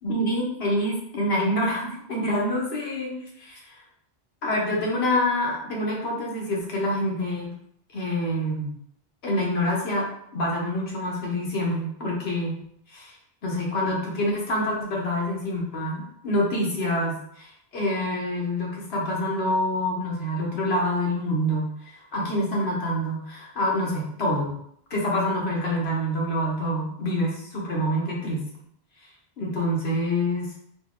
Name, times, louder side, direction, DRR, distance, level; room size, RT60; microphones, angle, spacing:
voice 1, 0.0-3.8 4.4-7.5 7.9-8.7 9.2-12.6 12.9-13.1 13.4-24.5 24.9-28.4 29.4-30.5, left 1 dB, 80° left, -2 dB, 1.4 m, -26 dB
4.2 x 2.6 x 3.8 m, 0.70 s
omnidirectional pair, 1.0 m